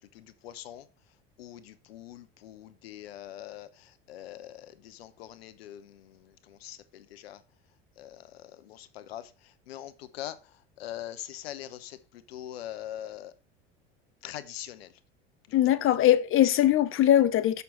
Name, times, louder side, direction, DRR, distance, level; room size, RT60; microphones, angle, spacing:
voice 1, 0.1-0.9 1.4-7.4 8.0-9.3 9.7-10.4 10.8-13.3 14.2-14.9, left 12 dB, 80° left, 0.9 m, -43 dB
voice 2, 15.5-17.6, left 12 dB, 45° left, 1.0 m, -21 dB
6.9 x 6.1 x 4.5 m
hypercardioid pair, 75°, 30 cm